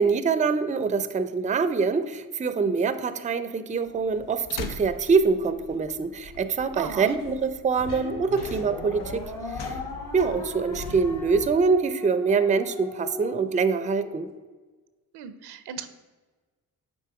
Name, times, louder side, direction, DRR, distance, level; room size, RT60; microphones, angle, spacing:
voice 1, 0.0-9.3 9.6-9.7 10.1-14.3, right 5 dB, 20° right, 13 dB, 0.4 m, -24 dB
sound 1, 3.8-11.6, left 3 dB, 85° left, 0.7 m, -41 dB
voice 2, 6.7-7.1 15.1-15.9, right 8 dB, 85° right, 11 dB, 0.6 m, -36 dB
sound 2, 7.8-14.3, left 3 dB, 55° left, 1.4 m, -38 dB
6.8 x 4.1 x 4.7 m, 1.3 s
supercardioid pair, 55°, 39 cm